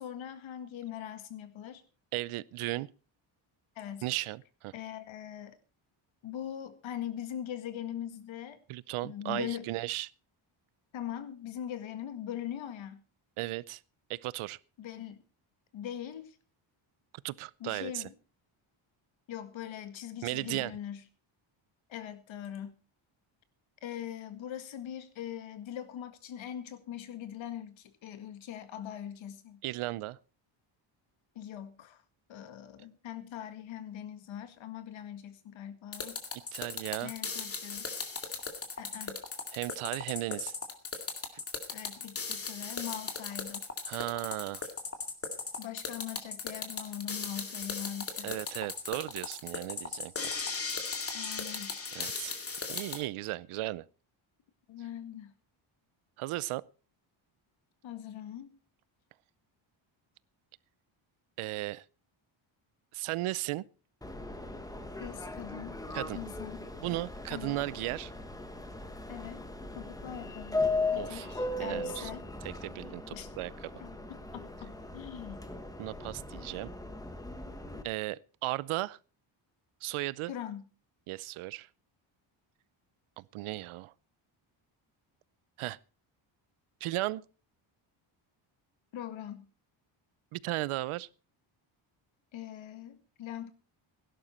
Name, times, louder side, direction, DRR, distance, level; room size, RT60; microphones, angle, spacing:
voice 1, 0.0-1.8 3.8-4.1 4.7-5.6 6.2-8.6 9.0-9.7 10.9-13.0 14.8-15.2 15.7-16.4 17.6-18.1 19.3-21.0 21.9-22.8 23.8-29.6 31.4-32.0 32.3-36.2 37.0-37.9 38.8-39.2 41.7-44.1 45.6-48.4 51.1-51.8 54.7-55.3 57.8-58.5 65.0-65.8 66.1-66.7 67.3-67.6 69.1-69.4 69.8-70.7 70.9-72.3 73.1-73.3 73.8-74.0 74.3-75.4 80.3-80.7 88.9-89.5 92.3-93.5, left 10 dB, 70° left, 1.9 m, -41 dB
voice 2, 2.1-2.9 4.0-4.7 8.7-10.1 13.4-13.8 14.1-14.6 17.2-18.1 20.2-20.7 29.6-30.2 36.5-37.1 39.5-40.5 41.3-41.4 43.8-44.6 48.2-50.3 51.9-52.3 52.7-53.8 56.2-56.6 61.4-61.8 62.9-63.6 65.9-66.2 66.8-68.1 71.0-72.1 72.4-73.8 75.8-76.7 77.8-79.0 79.8-80.3 81.1-81.7 83.2-83.9 85.6-85.8 86.8-87.2 90.3-91.1, right 18 dB, 90° right, 0.7 m, -36 dB
sound 1, 35.9-53.0, left 4 dB, 30° left, 2.2 m, -37 dB
Subway metro underground, 64.0-77.8, left 2 dB, 5° left, 1.3 m, -38 dB
17.0 x 11.5 x 4.3 m
cardioid pair, 155°, 48 cm